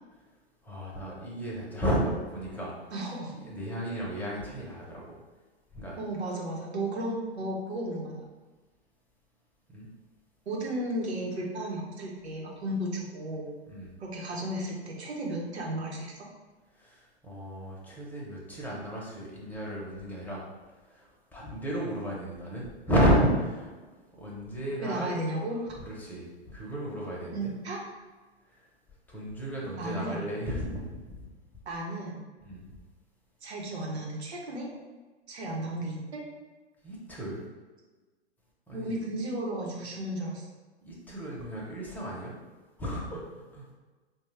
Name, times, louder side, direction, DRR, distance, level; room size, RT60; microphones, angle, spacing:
voice 1, 0.6-2.7 3.4-5.2 5.7-6.0 9.7-9.9 13.7-14.0 16.8-20.4 20.9-23.7 24.2-25.1 25.8-27.5 29.1-31.2 32.4-32.7 36.8-37.4 38.7-39.0 40.8-42.4 42.8-43.7, equal, 5° left, -5 dB, 1.1 m, -32 dB
voice 2, 2.9-3.3 6.0-8.2 10.5-13.5 14.0-16.1 24.8-25.7 27.3-27.8 29.8-30.3 31.6-32.2 33.4-34.7 35.3-36.2 38.7-40.4, right 1 dB, 75° right, -2 dB, 1.3 m, -34 dB
4.9 x 2.6 x 3.3 m, 1.3 s
figure-of-eight pair, 105°, 33 cm